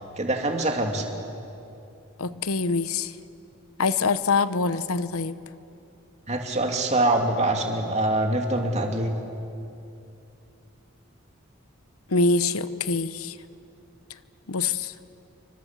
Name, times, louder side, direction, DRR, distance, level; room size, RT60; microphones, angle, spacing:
voice 1, 0.2-1.1 6.3-9.1, right 1 dB, 30° right, 2 dB, 2.7 m, -24 dB
voice 2, 2.2-3.1 3.8-5.4 12.1-13.3 14.5-14.9, left 4 dB, 85° left, 13 dB, 0.9 m, -24 dB
30.0 x 25.0 x 7.5 m, 2.7 s
head